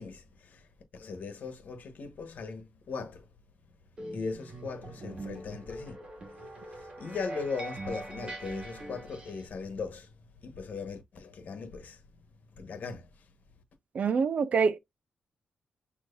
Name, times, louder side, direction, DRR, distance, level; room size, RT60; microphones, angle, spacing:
voice 1, 0.0-3.3 4.1-6.0 6.4-12.0 12.5-13.3, left 4 dB, 60° left, 1.3 m, -39 dB
sound 1, 4.0-9.5, right 2 dB, 30° right, 1.8 m, -42 dB
voice 2, 13.9-14.8, right 5 dB, 50° right, 0.5 m, -25 dB
6.4 x 3.0 x 2.6 m
wide cardioid pair, 140°, 3 cm